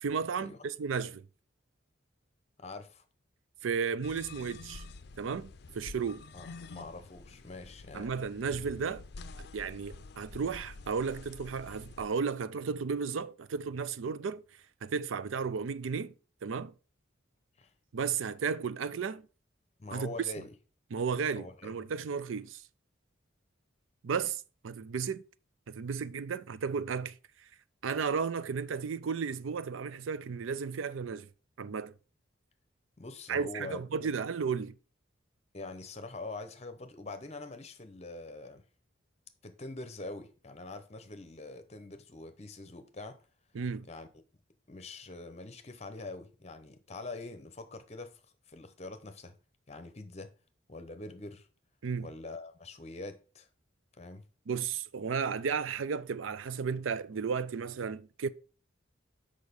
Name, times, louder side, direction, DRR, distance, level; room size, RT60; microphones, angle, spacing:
voice 1, 0.0-1.3 3.6-4.8 5.2-5.5 5.7-6.2 7.9-9.0 9.4-14.4 14.8-16.1 16.4-16.7 17.9-19.2 19.9-20.1 20.9-22.6 24.0-25.2 25.7-27.1 27.8-31.3 31.6-31.9 33.3-34.8 43.5-43.9 51.8-52.1 54.5-58.3, right 5 dB, 85° right, 0.5 m, -34 dB
voice 2, 2.6-3.0 6.3-8.1 11.7-11.8 17.6-17.7 19.8-20.5 21.3-21.7 33.0-34.1 35.5-38.6 39.4-43.2 43.9-44.1 44.7-48.2 48.5-49.3 49.7-50.3 50.7-51.5 52.0-53.5 53.9-54.2, left 2 dB, 35° left, 0.9 m, -44 dB
sound 1, 4.0-12.1, left 3 dB, 55° left, 0.5 m, -48 dB
6.4 x 5.2 x 5.3 m
head